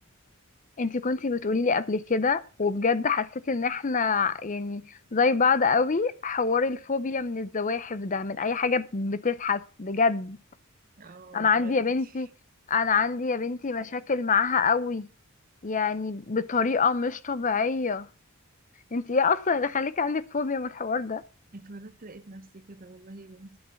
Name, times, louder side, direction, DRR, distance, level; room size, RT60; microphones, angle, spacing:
voice 1, 0.8-10.4 11.3-12.3 12.7-15.1 15.6-18.1 18.9-21.2, left 5 dB, 35° left, 0.6 m, -26 dB
voice 2, 11.0-12.1 21.5-23.6, right 2 dB, 40° right, 0.7 m, -46 dB
11.0 x 6.6 x 7.0 m
head